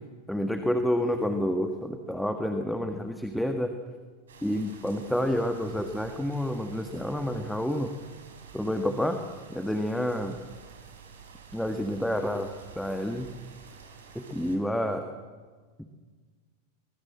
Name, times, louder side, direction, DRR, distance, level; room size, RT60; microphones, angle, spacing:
voice 1, 0.3-3.7 4.4-7.9 8.5-9.2 9.5-10.4 11.5-12.5 12.7-13.3 14.1-15.1 15.8-15.9, equal, ahead, 6 dB, 1.7 m, -29 dB
sound 1, 4.3-14.6, right 6 dB, 65° right, 4.3 m, -49 dB
24.5 x 21.0 x 7.6 m, 1.5 s
figure-of-eight pair, 90°, 0 cm